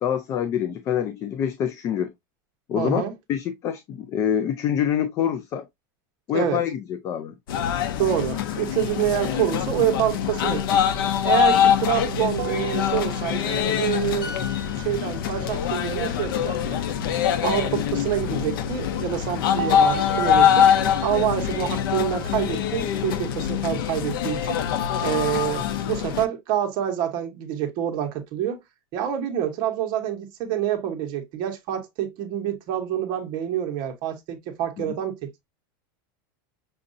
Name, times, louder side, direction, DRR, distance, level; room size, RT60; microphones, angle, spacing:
voice 1, 0.0-2.1 2.7-3.0 3.3-5.7 6.3-7.3 34.8-34.9, left 9 dB, 25° left, 0.4 m, -26 dB
voice 2, 2.8-3.1 6.3-6.6 8.0-10.8 11.2-14.3 14.7-16.8 17.4-20.7 21.0-24.6 25.0-28.6 28.9-35.5, right 10 dB, 40° right, 1.0 m, -27 dB
sound 1, 7.5-26.2, left 9 dB, 80° left, 0.6 m, -24 dB
sound 2, 12.4-13.9 19.6-22.9, right 9 dB, 60° right, 0.6 m, -35 dB
sound 3, 14.2-17.8 18.1-18.4, left 2 dB, 55° left, 3.4 m, -44 dB
6.3 x 2.6 x 2.5 m
supercardioid pair, 160°, 11 cm